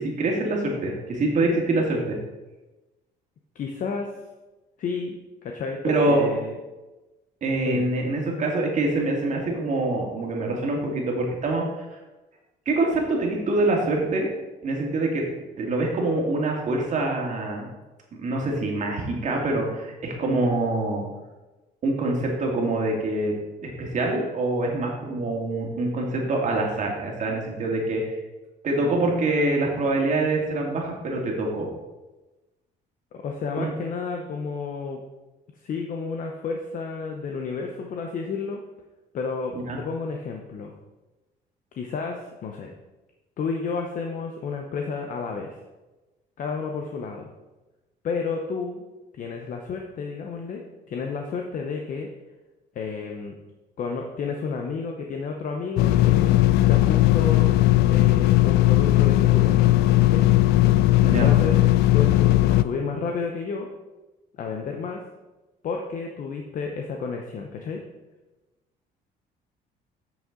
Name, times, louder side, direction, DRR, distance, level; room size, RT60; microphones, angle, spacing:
voice 1, 0.0-2.2 5.8-6.3 7.4-11.6 12.7-14.3 14.6-15.2 15.6-17.7 18.2-21.0 21.8-23.3 23.6-28.2 28.6-31.7 33.6-33.7 39.7-39.8 61.0-61.3, right 2 dB, 45° right, 0 dB, 2.1 m, -25 dB
voice 2, 3.5-4.1 4.8-5.2 5.4-6.6 7.6-7.9 33.1-35.0 35.5-38.6 39.1-40.7 41.8-42.7 43.4-45.6 46.4-47.3 48.0-48.9 49.1-52.1 52.7-53.3 53.8-57.5 57.9-60.2 61.0-61.6 61.9-63.7 64.3-65.0 65.6-67.8, left 5 dB, 50° left, 2 dB, 0.9 m, -31 dB
sound 1, 55.8-62.6, left 15 dB, 75° left, 0.4 m, -18 dB
8.4 x 6.3 x 3.8 m, 1.1 s
cardioid pair, 110°, 17 cm